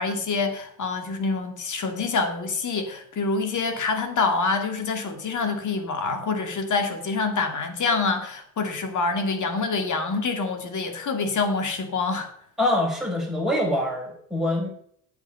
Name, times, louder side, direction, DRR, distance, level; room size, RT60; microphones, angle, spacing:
voice 1, 0.0-12.3, left 4 dB, 45° left, 6 dB, 2.6 m, -26 dB
voice 2, 12.6-14.7, left 1 dB, ahead, -2 dB, 5.8 m, -24 dB
9.3 x 8.2 x 5.6 m, 0.64 s
hypercardioid pair, 75°, 43 cm